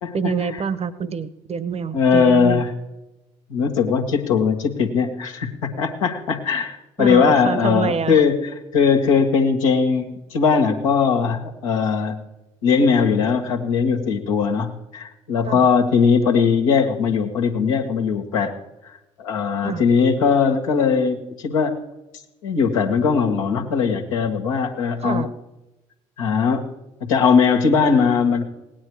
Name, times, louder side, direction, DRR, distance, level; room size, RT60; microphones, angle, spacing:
voice 1, 0.1-2.6 7.0-8.2 15.4-15.7 19.6-19.8 25.0-25.3, right 6 dB, 40° right, 16 dB, 1.1 m, -26 dB
voice 2, 1.9-2.7 3.5-12.2 12.6-18.5 18.8-18.9 19.2-21.8 22.4-25.3 26.2-26.7 27.0-28.4, left 5 dB, 85° left, 2 dB, 1.6 m, -19 dB
17.5 x 9.9 x 4.7 m, 0.97 s
hypercardioid pair, 55°, 17 cm